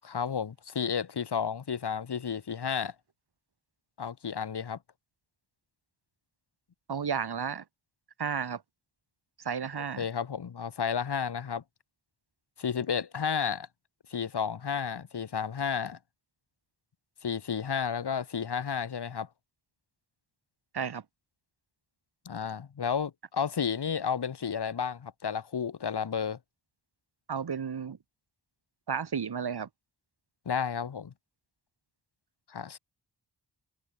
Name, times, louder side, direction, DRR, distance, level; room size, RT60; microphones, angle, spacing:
voice 1, 0.0-2.9 4.0-4.8 10.0-11.6 12.6-13.7 14.1-16.0 17.2-19.3 22.2-26.4 30.5-31.1 32.5-32.8, left 7 dB, 80° left, 7.9 m, -32 dB
voice 2, 6.9-7.6 8.2-8.6 9.4-10.1 20.7-21.0 27.3-28.0 28.9-29.7, right 6 dB, 75° right, 6.1 m, -32 dB
wide cardioid pair, 125°, 40 cm